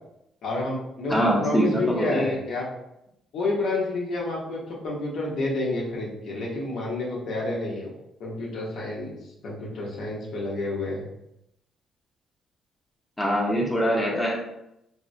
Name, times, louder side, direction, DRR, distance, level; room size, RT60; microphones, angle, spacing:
voice 1, 0.4-2.7 3.3-7.9 8.2-9.1 9.4-11.1, left 2 dB, 75° left, -4 dB, 0.8 m, -29 dB
voice 2, 1.1-2.4 13.2-14.4, equal, 15° left, -3 dB, 0.8 m, -23 dB
3.5 x 2.1 x 2.6 m, 0.83 s
cardioid pair, 90°, 0 cm